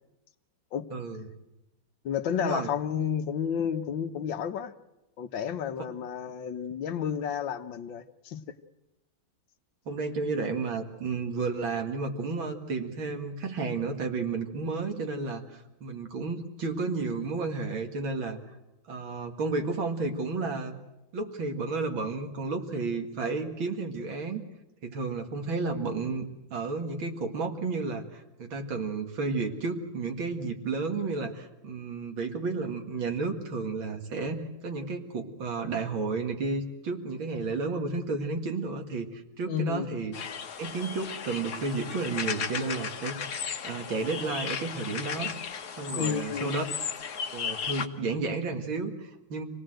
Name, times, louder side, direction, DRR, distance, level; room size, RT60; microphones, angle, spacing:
voice 1, 0.9-1.3 2.4-2.7 9.9-18.4 18.9-20.8 21.1-24.4 24.8-40.2 40.6-45.3 45.7-46.6 47.3-49.4, right 3 dB, 85° right, 2.9 m, -32 dB
voice 2, 2.0-4.7 5.2-8.4 39.5-39.9 46.0-46.5, left 8 dB, 75° left, 1.7 m, -31 dB
sound 1, 40.1-47.9, left 7 dB, 55° left, 1.6 m, -35 dB
26.0 x 18.5 x 7.8 m
omnidirectional pair, 2.1 m